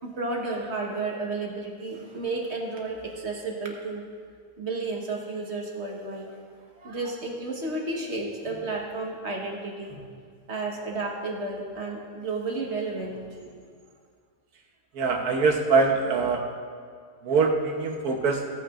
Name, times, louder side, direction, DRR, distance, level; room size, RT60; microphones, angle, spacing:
voice 1, 0.0-4.0 4.6-6.4 6.8-10.0 10.5-13.6, right 3 dB, 50° right, -1 dB, 1.5 m, -32 dB
voice 2, 14.9-16.6 17.2-18.5, right 4 dB, 85° right, 3 dB, 1.5 m, -23 dB
17.0 x 8.8 x 2.5 m, 2.1 s
omnidirectional pair, 1.6 m